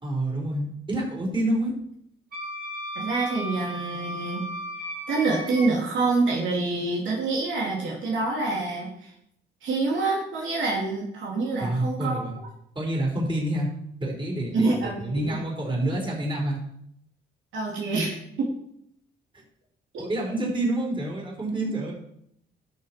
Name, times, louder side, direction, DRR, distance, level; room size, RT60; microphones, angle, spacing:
voice 1, 0.0-1.7 11.6-12.4 12.7-13.7 14.0-16.6 20.0-21.9, right 1 dB, 25° right, -2 dB, 4.2 m, -28 dB
Wind instrument woodwind instrument, 2.3-5.7, equal, 50° right, 4.5 m, -35 dB
voice 2, 3.0-4.5 5.1-9.1 9.6-12.2 14.4-15.4 17.5-18.5, right 3 dB, 75° right, -2 dB, 2.7 m, -26 dB
12.5 x 6.4 x 4.4 m, 0.72 s
cardioid pair, 90°, 20 cm